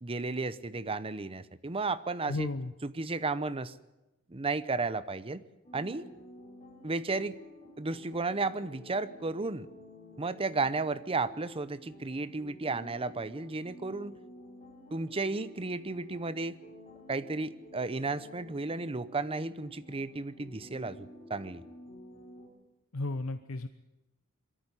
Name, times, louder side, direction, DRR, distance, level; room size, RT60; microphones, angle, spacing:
voice 1, 0.0-2.5 2.8-3.7 4.3-5.4 5.7-6.1 6.8-7.4 7.8-9.7 10.2-14.2 14.9-16.6 17.1-21.6, right 3 dB, 25° right, 15 dB, 0.8 m, -33 dB
voice 2, 2.3-2.7 22.9-23.7, left 2 dB, 80° left, 9 dB, 0.9 m, -33 dB
sound 1, 5.6-22.5, left 1 dB, 35° left, 5.4 m, -52 dB
22.5 x 14.0 x 9.7 m, 0.99 s
head